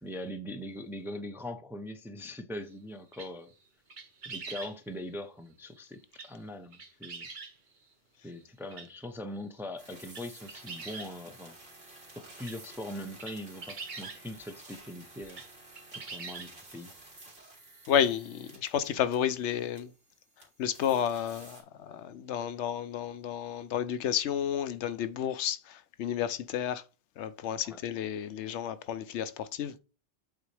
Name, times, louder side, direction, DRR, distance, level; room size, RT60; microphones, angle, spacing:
voice 1, 0.0-3.5 4.3-7.3 8.2-11.6 12.1-15.4 15.9-16.9 27.6-27.8, left 1 dB, 5° right, 0.4 m, -41 dB
sound 1, 3.1-3.5 3.9-4.8 6.1-6.4 6.7-7.5 8.4-8.5 8.7-8.9 9.4-9.5 9.9-11.4 11.9-12.0 12.3-14.2 15.2-15.5 15.7-16.7 17.4-17.5 17.8-17.9 19.2-19.3, right 4 dB, 45° right, 1.0 m, -43 dB
sound 2, 9.8-21.6, right 2 dB, 65° right, 2.3 m, -53 dB
voice 2, 17.9-19.9 20.6-26.8 27.2-29.8, left 9 dB, 85° left, 0.9 m, -31 dB
8.1 x 4.2 x 3.3 m
omnidirectional pair, 1.1 m